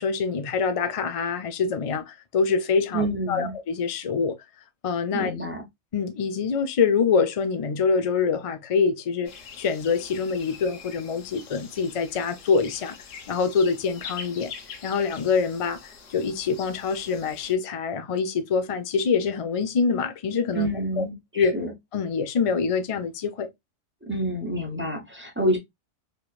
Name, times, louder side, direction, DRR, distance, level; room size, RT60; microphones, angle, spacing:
voice 1, 0.0-4.4 4.8-5.3 5.9-9.3 9.6-13.0 13.3-14.5 14.8-15.8 16.1-20.7 21.0-21.1 21.4-21.6 21.9-23.5, left 5 dB, 60° left, 0.3 m, -25 dB
voice 2, 2.9-3.5 5.1-5.6 20.5-21.7 24.1-25.6, right 1 dB, 10° right, 0.8 m, -28 dB
sound 1, 9.3-17.5, left 6 dB, 90° left, 1.1 m, -44 dB
3.1 x 3.0 x 2.3 m
omnidirectional pair, 1.3 m